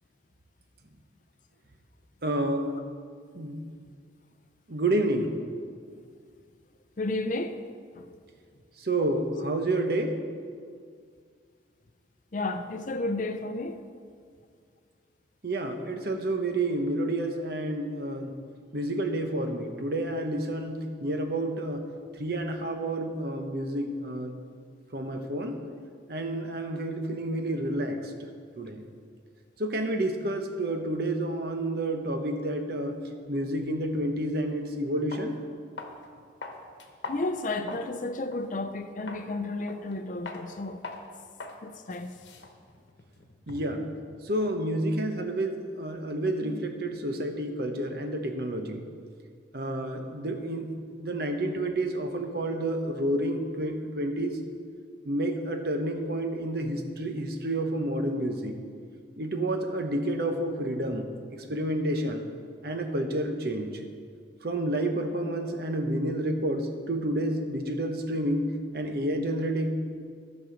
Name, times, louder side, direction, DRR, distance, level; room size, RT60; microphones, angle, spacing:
voice 1, 2.2-2.7 3.3-3.6 4.7-5.3 8.8-10.2 15.4-18.3 18.7-21.8 22.2-24.4 24.9-25.6 26.1-28.3 28.6-28.8 29.6-33.0 33.3-35.4 43.5-43.8 44.2-48.8 49.5-50.7 51.0-54.4 55.1-58.6 59.2-61.1 61.5-62.2 62.6-63.8 64.4-69.7, right 1 dB, 55° right, 0.9 m, -29 dB
voice 2, 7.0-7.6 12.3-13.7 37.1-40.8 41.6-42.1, left 2 dB, 45° left, 0.5 m, -32 dB
sound 1, 34.5-34.6 35.1-35.3 35.8-36.0 36.4-37.9 38.3-38.5 39.1-39.3 39.7-40.0 40.3-40.4 40.8-41.1 41.4-41.6 41.9-43.8, left 3 dB, 80° left, 1.1 m, -42 dB
14.5 x 6.3 x 5.0 m
head